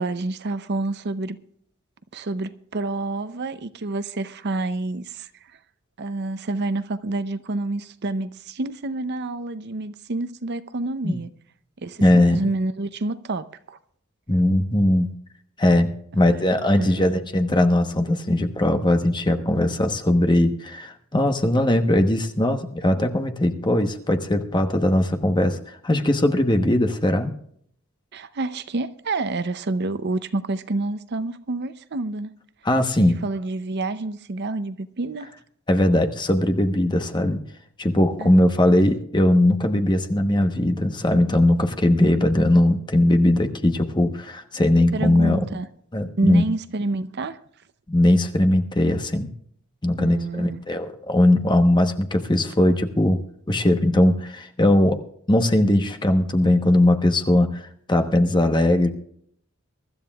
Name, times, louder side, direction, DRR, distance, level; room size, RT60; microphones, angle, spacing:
voice 1, 0.0-1.4 2.1-5.3 6.0-11.3 11.8-13.8 16.2-16.4 16.8-17.1 28.1-32.3 33.0-35.3 38.2-38.4 44.9-45.7 46.2-47.4 50.0-50.6, right 2 dB, 50° right, 0.6 m, -28 dB
voice 2, 12.0-12.4 14.3-15.1 15.6-27.3 32.6-33.2 35.7-37.4 37.8-45.4 45.9-46.4 47.9-49.3 49.8-53.2 53.5-55.0 55.3-58.9, left 1 dB, 20° left, 1.0 m, -20 dB
23.5 x 13.0 x 2.3 m
head